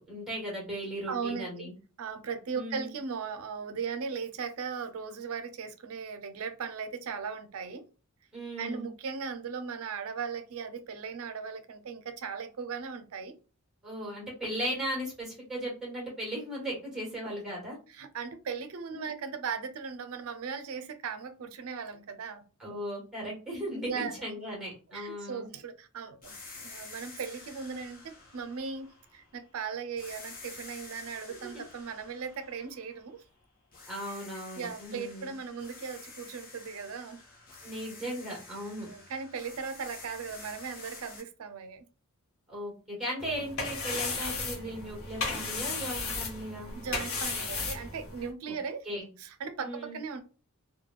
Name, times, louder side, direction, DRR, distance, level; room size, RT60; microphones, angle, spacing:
voice 1, 0.0-1.7 2.5-2.9 8.3-8.9 13.8-17.8 18.9-19.1 22.6-25.5 31.4-31.6 33.9-35.3 37.6-38.9 42.5-46.7 48.8-49.1 49.6-50.0, equal, ahead, 1.4 m, -37 dB
voice 2, 1.1-1.7 2.0-7.8 8.6-13.4 17.9-22.4 23.8-24.1 24.9-33.2 34.1-34.2 34.6-37.2 38.9-41.9 46.7-48.9 49.2-50.2, right 5 dB, 70° right, 0.5 m, -38 dB
sound 1, 26.2-29.5 30.0-33.3 33.7-41.2, left 3 dB, 40° left, 0.9 m, -49 dB
sound 2, 43.2-48.3, left 4 dB, 65° left, 0.9 m, -35 dB
3.1 x 2.2 x 2.3 m
head